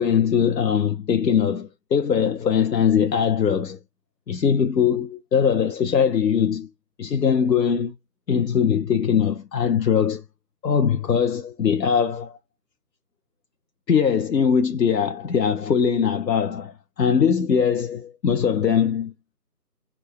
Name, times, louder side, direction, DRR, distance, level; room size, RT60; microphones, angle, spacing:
voice 1, 0.0-3.8 4.3-6.7 7.0-7.9 8.3-10.2 10.6-12.3 13.9-19.1, left 7 dB, 90° left, 0.7 m, -21 dB
2.9 x 2.2 x 4.2 m
figure-of-eight pair, 170°, 49 cm